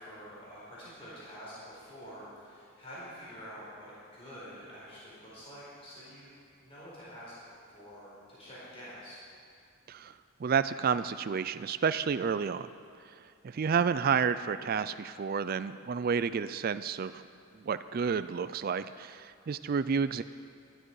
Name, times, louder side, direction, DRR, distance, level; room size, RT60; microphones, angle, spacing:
voice 1, 0.0-6.3 6.6-7.3 7.7-9.2, equal, 25° left, -9 dB, 4.6 m, -47 dB
voice 2, 10.4-12.7 13.4-17.2 17.7-20.2, right 6 dB, 40° right, 13 dB, 0.3 m, -30 dB
18.0 x 12.0 x 4.8 m, 2.4 s
head